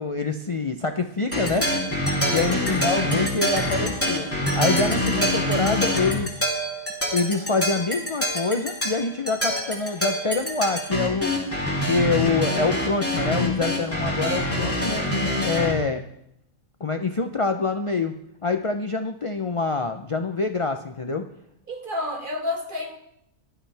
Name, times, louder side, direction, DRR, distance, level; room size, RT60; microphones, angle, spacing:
voice 1, 0.0-1.7 2.3-4.3 4.6-6.3 7.1-11.3 11.8-15.0 15.4-16.0 16.8-18.1 18.4-21.2, left 4 dB, 40° left, 7 dB, 0.5 m, -25 dB
sound 1, 1.3-15.7, left 1 dB, 10° left, 3.0 m, -25 dB
voice 2, 21.7-23.0, left 2 dB, 35° right, 4 dB, 1.7 m, -29 dB
18.0 x 12.0 x 3.4 m, 0.76 s
omnidirectional pair, 1.5 m